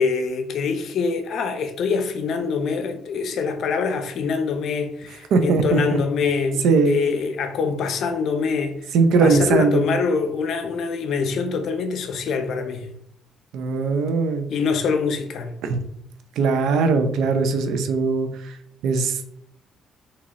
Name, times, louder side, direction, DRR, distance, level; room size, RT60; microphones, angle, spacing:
voice 1, 0.0-8.9 9.2-12.9 14.5-15.6, left 5 dB, 65° left, 0.6 m, -24 dB
voice 2, 5.3-5.8 6.6-7.0 8.9-10.0 13.5-14.5 15.6-15.8 16.4-18.6 18.8-19.3, right 4 dB, 75° right, 0.5 m, -20 dB
3.9 x 2.9 x 2.9 m
cardioid pair, 80°, 0 cm